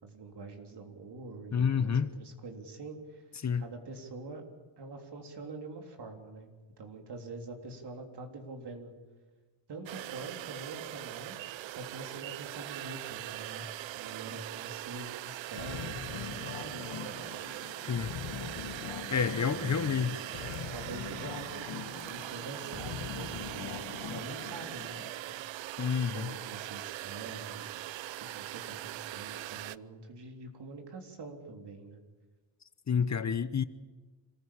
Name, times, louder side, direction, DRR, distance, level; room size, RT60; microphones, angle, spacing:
voice 1, 0.0-3.3 3.5-4.4 4.8-6.5 6.8-8.9 9.7-17.2 19.5-20.3 20.7-25.4 26.1-27.8 28.1-32.0, right 3 dB, 60° right, 3.7 m, -45 dB
voice 2, 1.5-2.1 3.4-3.6 17.9-18.1 19.1-20.2 25.8-26.3 32.9-33.6, left 6 dB, 35° left, 1.0 m, -29 dB
sound 1, 9.9-29.8, right 15 dB, 75° right, 0.6 m, -41 dB
sound 2, 15.6-25.1, left 7 dB, 85° left, 2.1 m, -42 dB
26.5 x 15.0 x 8.8 m
cardioid pair, 75°, 45 cm